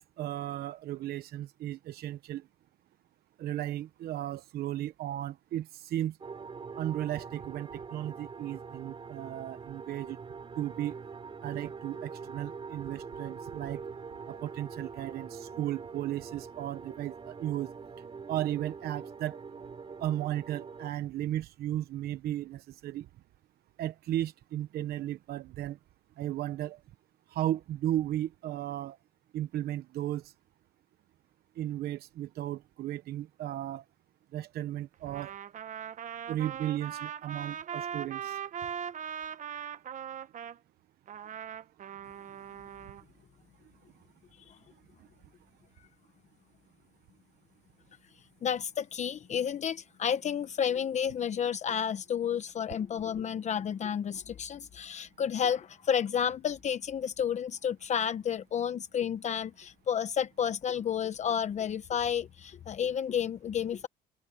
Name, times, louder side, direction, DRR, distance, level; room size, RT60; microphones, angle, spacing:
voice 1, 0.0-2.4 3.4-6.2 6.8-10.2 10.6-11.0 11.4-13.8 14.3-17.7 18.3-19.4 20.0-23.1 23.8-25.8 26.2-26.8 27.3-29.0 29.3-30.3 31.6-33.8 34.3-35.3 36.3-38.4, right 13 dB, 70° right, 1.0 m, -35 dB
sound 1, 6.2-20.9, right 5 dB, 30° right, 8.0 m, -44 dB
Trumpet, 35.1-40.6 41.1-43.0, right 8 dB, 50° right, 1.3 m, -40 dB
voice 2, 48.4-63.9, left 8 dB, 45° left, 1.0 m, -31 dB
cardioid pair, 110°, 17 cm